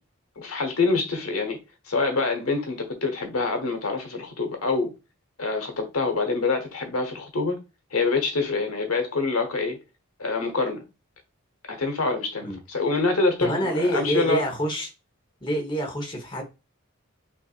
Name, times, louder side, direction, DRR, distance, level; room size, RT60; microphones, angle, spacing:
voice 1, 0.4-1.6 1.9-4.9 5.4-7.6 7.9-9.8 10.2-10.9 11.7-14.4, left 3 dB, 80° left, 1.0 m, -26 dB
voice 2, 13.4-14.9 15.4-16.4, right 1 dB, 20° left, 1.1 m, -26 dB
5.7 x 2.5 x 2.4 m
head